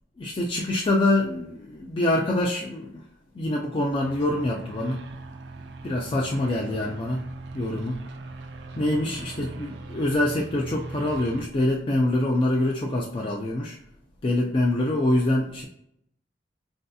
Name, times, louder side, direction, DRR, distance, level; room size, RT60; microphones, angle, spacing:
voice 1, 0.2-3.0 3.4-5.0 5.8-7.2 7.5-8.0 8.8-13.8 14.2-15.7, left 1 dB, 30° left, -1 dB, 0.4 m, -25 dB
sound 1, 4.0-11.5, right 2 dB, 70° right, 0.4 m, -40 dB
4.0 x 2.7 x 2.2 m, 0.75 s
head